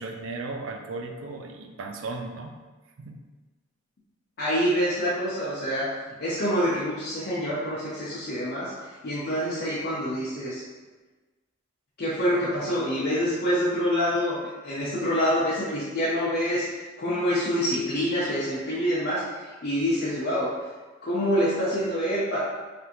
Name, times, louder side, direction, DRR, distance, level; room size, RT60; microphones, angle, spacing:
voice 1, 0.0-2.5 3.0-3.2, right 3 dB, 75° right, 3 dB, 0.4 m, -36 dB
voice 2, 4.4-5.9 6.2-10.6 12.0-16.7 17.0-20.5 21.0-22.4, equal, 50° left, -9 dB, 0.6 m, -26 dB
3.4 x 2.5 x 2.8 m, 1.3 s
head